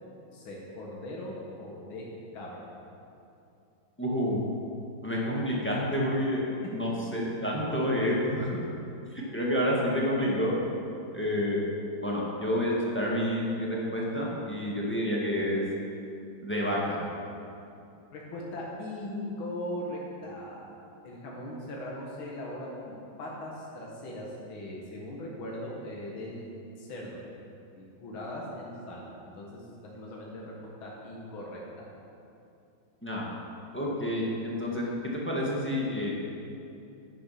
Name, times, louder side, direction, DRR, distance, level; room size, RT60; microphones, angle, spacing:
voice 1, 0.3-2.1 2.3-2.7 18.1-20.8 21.0-26.5 26.8-27.2 27.8-29.1 29.4-29.6 29.9-31.6, left 1 dB, 85° left, -4 dB, 2.4 m, -39 dB
voice 2, 4.0-4.4 5.0-6.4 6.7-8.6 9.1-10.5 11.1-11.6 12.0-15.6 16.4-17.0 33.0-33.3 33.7-34.9 35.1-36.1, equal, 5° left, -4 dB, 1.5 m, -29 dB
10.0 x 9.2 x 5.9 m, 2.7 s
omnidirectional pair, 2.2 m